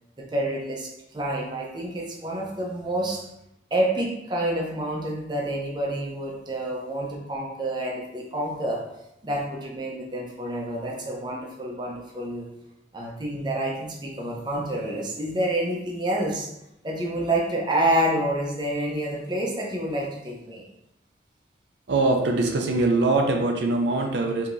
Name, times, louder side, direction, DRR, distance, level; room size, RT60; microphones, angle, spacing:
voice 1, 0.2-3.2 3.7-8.8 9.2-12.5 12.9-16.5 16.8-20.6, right 1 dB, 25° right, -2 dB, 0.7 m, -28 dB
voice 2, 21.9-24.5, right 2 dB, 75° right, 2 dB, 0.5 m, -22 dB
4.8 x 2.8 x 2.6 m, 0.84 s
head